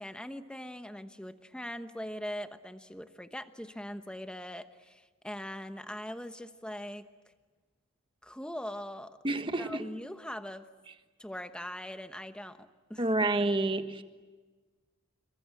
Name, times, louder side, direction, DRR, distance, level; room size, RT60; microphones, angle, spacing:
voice 1, 0.0-7.0 8.2-9.2 9.6-10.7 11.2-13.0, equal, 5° left, 1.1 m, -41 dB
voice 2, 9.2-9.9 13.0-14.0, right 2 dB, 25° right, 1.4 m, -29 dB
28.0 x 23.0 x 9.0 m
head